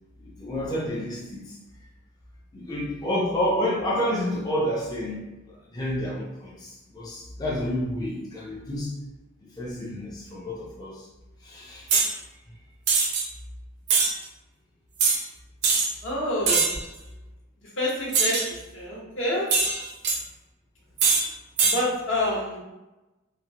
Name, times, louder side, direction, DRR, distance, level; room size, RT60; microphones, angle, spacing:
voice 1, 0.2-1.5 2.5-5.2 5.7-8.9 9.6-11.1 11.4-11.9, equal, 20° left, -5 dB, 0.4 m, -29 dB
sound 1, 11.9-12.1 12.9-13.2 13.9-14.1 15.0-15.2 15.6-15.9 16.5-16.8 18.1-18.5 19.5-20.2 21.0-21.2 21.6-21.8, right 4 dB, 60° right, 0.5 m, -22 dB
voice 2, 16.0-16.7 17.8-19.5 21.6-22.6, left 1 dB, 70° left, -5 dB, 0.9 m, -27 dB
2.8 x 2.0 x 2.7 m, 1.0 s
head